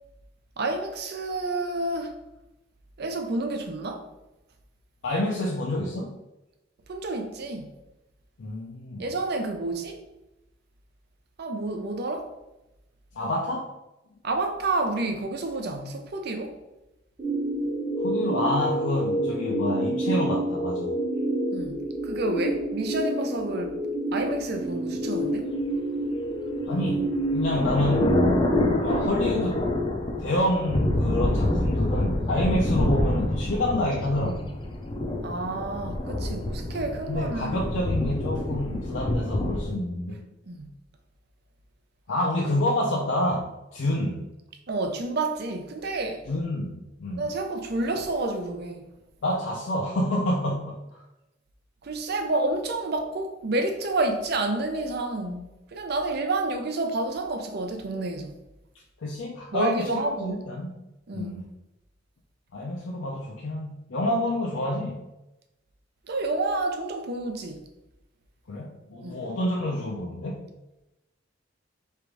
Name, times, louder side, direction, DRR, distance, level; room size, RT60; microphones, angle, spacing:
voice 1, 0.6-2.2 3.0-4.1 6.9-7.7 9.0-10.0 11.4-12.3 14.2-16.6 21.5-23.8 24.1-25.5 28.5-28.8 35.2-37.6 40.5-40.7 44.7-46.3 47.2-48.9 51.8-58.4 59.5-60.4 61.1-61.4 66.1-67.7 69.0-69.2, right 2 dB, 55° right, 0.5 m, -29 dB
voice 2, 5.0-6.1 8.4-9.0 13.2-13.7 18.0-20.9 26.7-28.2 28.8-29.7 30.2-34.5 37.1-40.2 42.1-44.3 46.3-47.2 49.2-50.8 59.0-60.8 61.1-61.4 62.5-65.0 68.5-70.4, left 1 dB, 85° left, 0.5 m, -28 dB
sound 1, 17.2-29.1, right 1 dB, 25° right, 1.0 m, -28 dB
sound 2, 26.6-39.7, left 1 dB, 25° left, 0.5 m, -27 dB
3.3 x 2.5 x 4.5 m
head